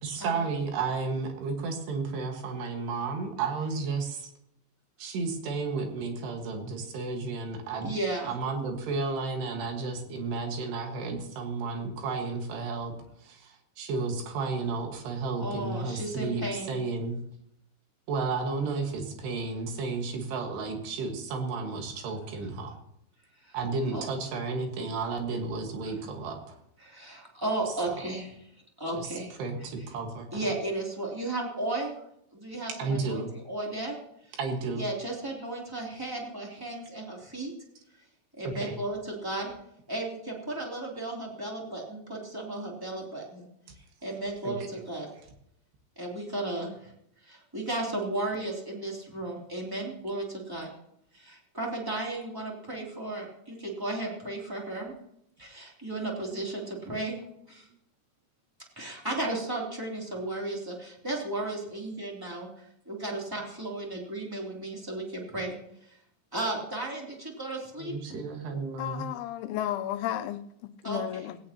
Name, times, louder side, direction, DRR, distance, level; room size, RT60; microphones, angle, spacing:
voice 1, 0.0-4.3 5.0-7.9 8.2-17.2 18.1-22.8 23.5-26.6 28.9-30.5 32.8-33.3 34.3-34.9 38.4-38.8 44.4-44.8 67.8-69.0, right 4 dB, 65° right, 3 dB, 3.7 m, -32 dB
voice 2, 7.8-8.4 15.4-16.7 23.4-23.5 23.9-24.0 26.8-28.3 28.8-29.3 30.3-31.9 32.3-33.2 33.5-34.0 34.8-37.5 38.4-39.5 39.9-43.5 44.0-45.1 46.0-46.9 47.2-50.7 51.1-54.9 55.4-57.2 57.5-57.7 58.8-65.6 65.9-66.0 66.3-68.2 70.8-71.2, right 2 dB, 5° right, -2 dB, 1.8 m, -34 dB
voice 3, 68.8-71.4, left 12 dB, 90° left, 11 dB, 3.1 m, -33 dB
18.0 x 17.0 x 3.0 m, 0.75 s
omnidirectional pair, 5.3 m